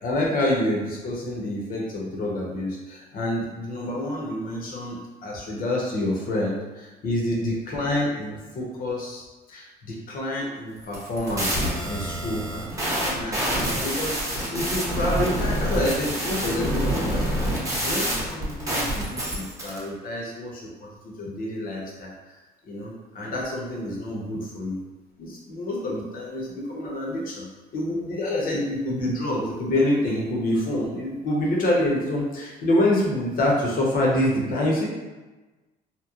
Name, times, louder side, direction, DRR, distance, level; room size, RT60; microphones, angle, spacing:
voice 1, 0.0-9.2 9.5-17.5 17.8-22.1 22.7-24.8 25.2-27.5 27.7-34.9, left 1 dB, 55° left, -3 dB, 0.8 m, -27 dB
sound 1, 10.8-19.8, equal, 20° right, 0.8 m, -27 dB
2.9 x 2.1 x 2.4 m, 1.2 s
cardioid pair, 110°, 17 cm